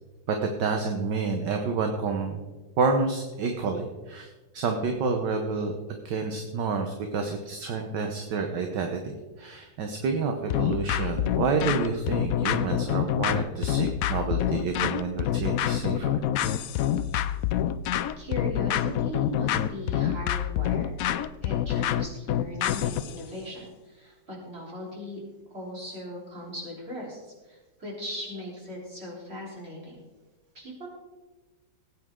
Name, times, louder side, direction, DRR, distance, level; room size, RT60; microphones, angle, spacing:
voice 1, 0.3-2.5 2.8-5.8 6.1-16.2, right 4 dB, 65° right, 4 dB, 1.6 m, -29 dB
sound 1, 10.5-23.2, left 11 dB, 85° left, 0.7 m, -27 dB
voice 2, 18.2-20.9 21.4-25.2 25.5-30.0 30.5-30.9, equal, 30° right, -4 dB, 4.0 m, -38 dB
19.0 x 9.0 x 3.7 m, 1.2 s
omnidirectional pair, 2.1 m